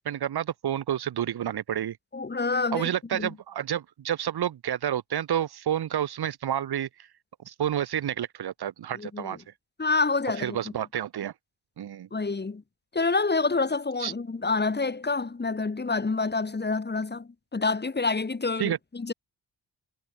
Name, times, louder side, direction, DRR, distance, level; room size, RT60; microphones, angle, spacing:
voice 1, 0.0-2.0 2.7-6.9 7.5-9.4 10.4-11.3 11.8-12.1 14.0-14.1 18.6-18.8, right 10 dB, 80° right, 2.1 m, -29 dB
voice 2, 2.1-3.3 9.0-9.4 9.8-10.6 12.1-12.6 12.9-19.1, left 3 dB, 25° left, 2.3 m, -27 dB
cardioid pair, 95°, 38 cm